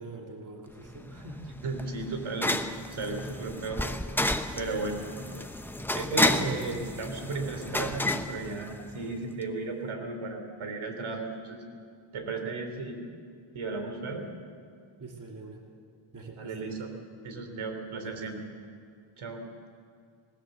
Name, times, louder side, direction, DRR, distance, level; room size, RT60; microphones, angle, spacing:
voice 1, 0.0-1.5 15.0-15.6 16.1-16.9 18.0-18.4, right 2 dB, 40° right, 0 dB, 2.9 m, -44 dB
sound 1, 0.8-9.2, left 1 dB, 5° left, 0.9 m, -31 dB
voice 2, 1.6-2.5 2.9-3.8 4.6-5.0 5.9-11.6 12.1-13.0 13.5-14.3 16.4-16.9 17.2-18.4 19.2-19.4, right 3 dB, 80° right, 5 dB, 3.3 m, -34 dB
20.0 x 20.0 x 7.9 m, 2.2 s
wide cardioid pair, 105°, 47 cm